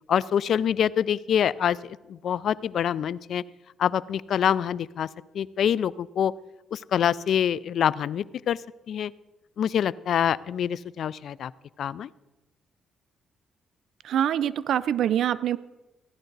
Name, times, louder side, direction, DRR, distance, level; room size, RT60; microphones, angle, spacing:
voice 1, 0.1-3.4 3.8-5.1 5.3-6.3 6.7-8.6 8.9-9.1 9.6-11.5 11.8-12.1, left 9 dB, 65° left, 21 dB, 0.3 m, -25 dB
voice 2, 14.0-15.6, right 10 dB, 70° right, 17 dB, 0.4 m, -24 dB
16.0 x 11.0 x 4.0 m, 1.1 s
cardioid pair, 90°, 0 cm